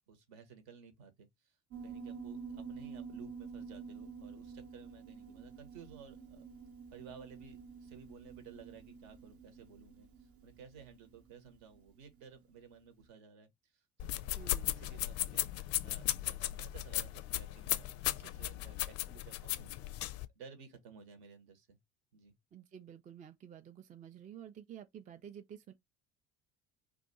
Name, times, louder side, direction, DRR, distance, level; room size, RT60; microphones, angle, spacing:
voice 1, 0.1-1.5 1.8-6.5 6.9-13.5 14.0-14.3 14.7-17.9 18.2-19.7 20.3-21.8 22.1-22.3, right 6 dB, 65° right, 1.1 m, -55 dB
Piano, 1.7-12.4, right 5 dB, 40° right, 0.8 m, -49 dB
sound 1, 14.0-20.3, left 14 dB, 45° left, 0.4 m, -36 dB
voice 2, 14.4-14.9 22.5-25.7, right 9 dB, 25° right, 0.4 m, -51 dB
2.5 x 2.3 x 4.0 m
hypercardioid pair, 65°, 33 cm